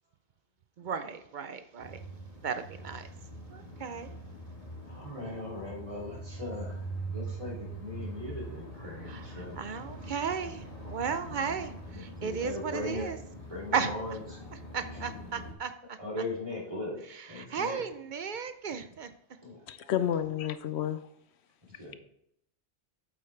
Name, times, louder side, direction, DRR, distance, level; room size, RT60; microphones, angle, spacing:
voice 1, 0.8-2.0 2.4-3.1 3.5-4.1 9.1-13.2 13.7-13.9 14.7-16.0 17.1-19.1, right 6 dB, 55° right, 10 dB, 0.5 m, -35 dB
sound 1, 1.8-15.5, right 2 dB, 30° left, 1.6 m, -43 dB
voice 2, 4.8-9.6 11.2-11.6 11.9-13.1 13.5-14.8 16.0-17.0 17.3-17.8 19.4-19.9 21.7-22.0, left 2 dB, 25° right, -5 dB, 2.7 m, -39 dB
voice 3, 19.7-21.0, left 10 dB, 70° left, 12 dB, 0.8 m, -30 dB
8.2 x 7.7 x 3.3 m, 0.74 s
omnidirectional pair, 1.3 m